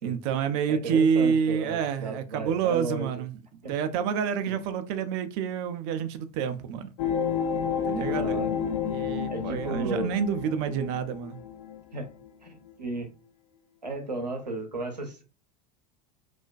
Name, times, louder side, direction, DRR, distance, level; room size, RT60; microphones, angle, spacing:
voice 1, 0.0-3.4 3.7-6.9 7.8-8.4 8.8-11.4, right 7 dB, 45° right, 0.4 m, -28 dB
voice 2, 0.7-3.1 3.6-3.7 4.5-4.6 8.1-8.5 9.3-10.1 11.9-12.1 12.4-13.1 13.8-15.2, right 2 dB, 90° right, 0.7 m, -34 dB
sound 1, 7.0-11.8 12.3-12.4, left 7 dB, 45° left, 0.5 m, -30 dB
2.4 x 2.1 x 2.4 m
figure-of-eight pair, 80°, 21 cm